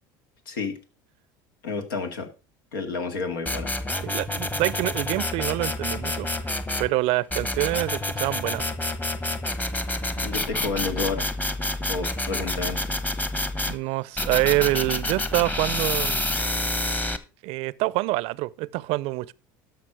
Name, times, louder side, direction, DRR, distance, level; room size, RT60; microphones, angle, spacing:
voice 1, 0.5-0.8 1.6-2.3 2.7-3.7 10.2-11.3 11.9-12.8, left 4 dB, 85° left, 2.1 m, -30 dB
sound 1, 3.5-6.9 7.3-13.8 14.2-17.2, left 1 dB, 15° left, 1.1 m, -28 dB
voice 2, 4.0-6.3 6.8-8.7 13.6-16.3 17.4-19.3, right 20 dB, 65° right, 0.5 m, -26 dB
12.5 x 5.9 x 4.8 m
hypercardioid pair, 85°, 11 cm